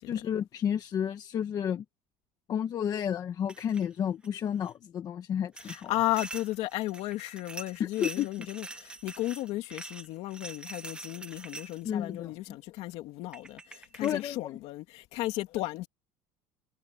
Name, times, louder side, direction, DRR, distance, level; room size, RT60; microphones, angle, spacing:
voice 1, 0.1-1.8 2.5-5.9 7.8-8.3 11.8-12.6 14.0-14.5, left 9 dB, 30° left, 1.4 m, -31 dB
sound 1, 3.5-3.9 4.2-4.7 5.6-11.9 12.9-13.0 13.3-14.2, right 2 dB, 5° right, 1.2 m, -44 dB
voice 2, 5.7-15.9, left 17 dB, 50° left, 2.6 m, -34 dB
cardioid pair, 175°, 13 cm